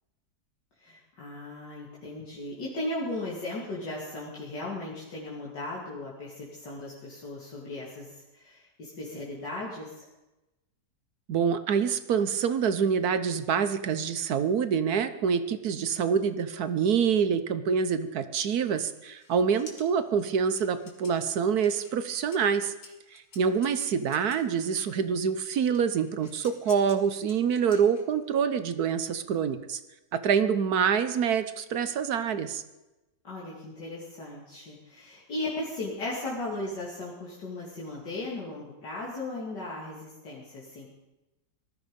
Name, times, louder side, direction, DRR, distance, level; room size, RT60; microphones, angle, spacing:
voice 1, 0.8-10.1 33.2-40.9, left 2 dB, 85° left, -6 dB, 3.2 m, -37 dB
voice 2, 11.3-22.7 23.1-29.8 30.1-32.6, right 7 dB, 65° right, 11 dB, 1.4 m, -26 dB
sound 1, 18.8-25.0 25.7-28.3, left 3 dB, 60° left, 2.5 m, -52 dB
19.5 x 13.0 x 5.3 m, 1.0 s
omnidirectional pair, 1.8 m